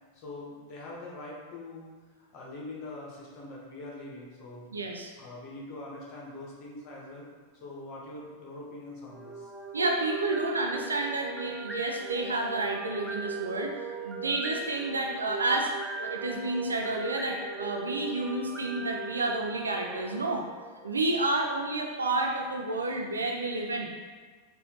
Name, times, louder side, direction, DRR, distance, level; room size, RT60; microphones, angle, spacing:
voice 1, 0.1-1.9 2.2-4.7 5.2-7.3 7.6-9.5, left 2 dB, 40° left, -3 dB, 1.1 m, -43 dB
voice 2, 4.7-5.1 9.7-13.7 14.0-15.7 16.0-20.4 20.8-23.9, right 2 dB, 75° right, 1 dB, 0.5 m, -30 dB
sound 1, 9.1-21.2, right 3 dB, 5° right, 0.6 m, -39 dB
4.3 x 2.6 x 3.6 m, 1.5 s
figure-of-eight pair, 90°, 0 cm